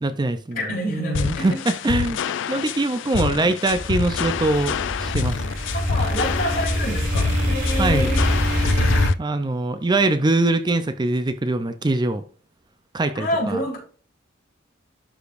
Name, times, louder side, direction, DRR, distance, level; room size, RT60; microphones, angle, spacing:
voice 1, 0.0-0.6 0.9-2.2 2.5-5.4 7.8-8.1 9.2-12.2 12.9-13.6, right 2 dB, 20° right, 10 dB, 0.5 m, -23 dB
voice 2, 0.5-1.5 5.7-8.2 13.1-13.8, equal, 50° left, -2 dB, 3.6 m, -27 dB
sound 1, 1.1-9.1, left 7 dB, 65° left, 0.4 m, -27 dB
sound 2, 3.7-9.1, equal, 60° right, 3.1 m, -24 dB
11.5 x 5.0 x 2.5 m, 0.42 s
head